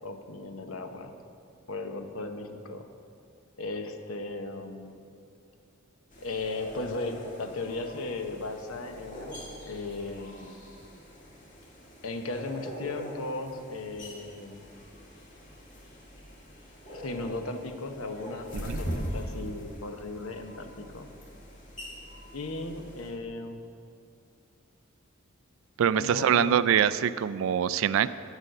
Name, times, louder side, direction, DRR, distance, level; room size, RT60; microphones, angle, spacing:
voice 1, 0.0-1.1 1.7-2.9 3.6-5.0 6.2-10.5 12.0-14.6 16.9-21.1 22.3-23.6 26.0-26.6, left 2 dB, 75° left, 6 dB, 0.9 m, -36 dB
sound 1, 6.1-23.1, equal, 40° left, 2.0 m, -42 dB
voice 2, 25.8-28.1, right 8 dB, 65° right, 16 dB, 0.3 m, -24 dB
8.3 x 8.2 x 6.5 m, 2.4 s
head